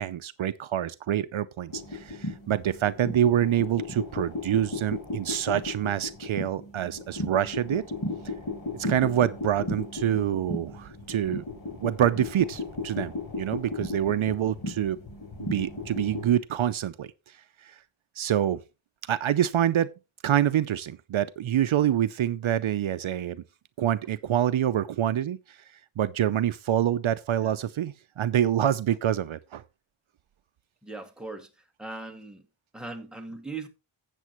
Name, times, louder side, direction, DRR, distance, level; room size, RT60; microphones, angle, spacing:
voice 1, 0.0-7.8 8.7-11.4 11.8-15.0 15.4-17.1 17.6-17.7 18.2-18.6 19.1-19.9 20.2-23.4 23.8-25.6 26.0-29.6, right 10 dB, 70° right, 0.6 m, -26 dB
sound 1, 1.7-16.3, left 2 dB, 45° left, 4.2 m, -35 dB
voice 2, 30.8-31.5 31.8-32.4 32.7-33.7, right 3 dB, ahead, 1.8 m, -39 dB
12.5 x 8.4 x 3.0 m
wide cardioid pair, 115°, 50 cm